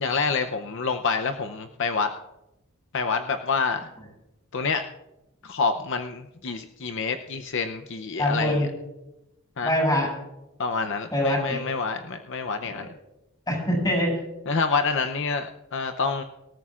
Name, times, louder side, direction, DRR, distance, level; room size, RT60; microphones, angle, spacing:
voice 1, 0.0-2.1 2.9-3.9 4.5-4.9 5.4-8.7 9.6-9.7 10.6-12.9 14.5-16.2, left 4 dB, 60° left, 6 dB, 0.7 m, -27 dB
voice 2, 8.2-8.7 9.6-10.1 11.1-11.6 12.7-12.8 13.5-14.1, left 1 dB, 20° left, -2 dB, 6.4 m, -24 dB
24.5 x 14.0 x 2.5 m, 0.97 s
head